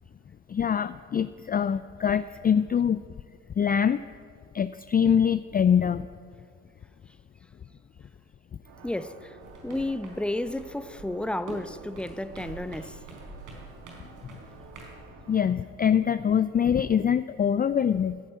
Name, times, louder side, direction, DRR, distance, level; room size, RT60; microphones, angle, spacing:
voice 1, 0.5-3.0 3.6-4.0 4.5-6.1 15.3-18.2, left 8 dB, 25° left, 0.4 m, -24 dB
sound 1, 8.6-15.5, right 4 dB, 85° right, 2.0 m, -51 dB
voice 2, 8.8-9.4 9.6-13.0, left 1 dB, 5° left, 0.7 m, -32 dB
sound 2, 9.4-15.0, right 2 dB, 65° right, 4.1 m, -46 dB
15.0 x 9.8 x 9.1 m
hypercardioid pair, 60°, 33 cm